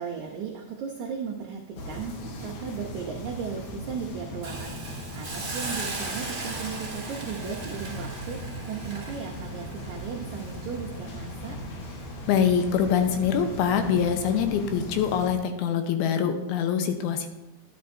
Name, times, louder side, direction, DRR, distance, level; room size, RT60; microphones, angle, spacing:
voice 1, 0.0-2.2 2.4-11.6, right 6 dB, 90° right, 0 dB, 1.6 m, -36 dB
sound 1, 1.8-15.3, equal, 65° left, 2.1 m, -38 dB
Hiss, 4.4-11.5 11.9-12.0, right 3 dB, 20° right, 1.0 m, -38 dB
voice 2, 12.3-17.3, left 7 dB, 80° left, 6 dB, 2.7 m, -24 dB
11.0 x 11.0 x 2.6 m, 0.97 s
omnidirectional pair, 4.5 m